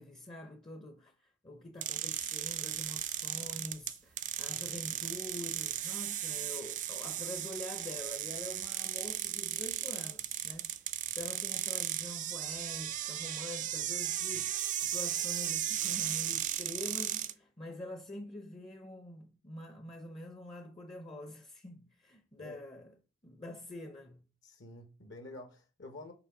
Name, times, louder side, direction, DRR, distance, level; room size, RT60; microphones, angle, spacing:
voice 1, 0.0-22.9 23.2-24.2, left 1 dB, 25° left, 0.6 m, -46 dB
sound 1, 1.8-17.3, right 12 dB, 35° right, 0.4 m, -36 dB
voice 2, 24.4-26.1, left 2 dB, 60° left, 0.9 m, -49 dB
5.9 x 4.0 x 5.8 m
head